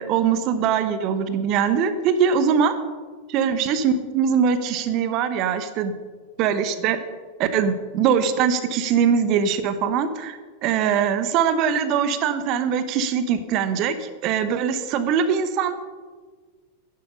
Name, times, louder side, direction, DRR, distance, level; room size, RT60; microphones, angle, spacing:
voice 1, 0.0-2.7 3.3-5.9 6.4-7.0 7.4-15.7, right 7 dB, 40° right, 11 dB, 1.0 m, -22 dB
10.5 x 10.5 x 5.5 m, 1.5 s
figure-of-eight pair, 90°, 0 cm